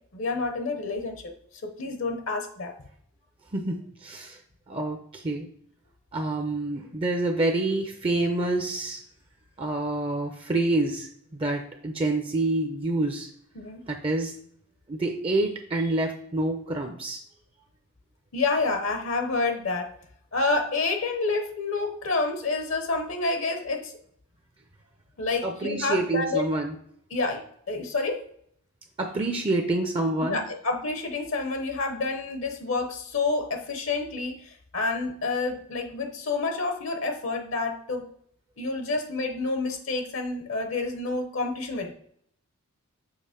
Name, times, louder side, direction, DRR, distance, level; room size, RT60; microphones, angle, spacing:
voice 1, 0.1-1.3 1.6-2.8 13.5-13.8 18.3-19.9 20.3-23.9 25.2-26.5 27.1-28.2 30.2-38.1 38.6-41.9, left 3 dB, 60° left, 6 dB, 0.8 m, -28 dB
voice 2, 3.5-4.4 4.7-5.5 6.1-9.0 9.6-13.3 13.9-14.3 14.9-17.2 25.4-26.8 29.0-30.4, right 2 dB, 25° right, 4 dB, 0.5 m, -27 dB
6.5 x 2.9 x 5.0 m, 0.66 s
head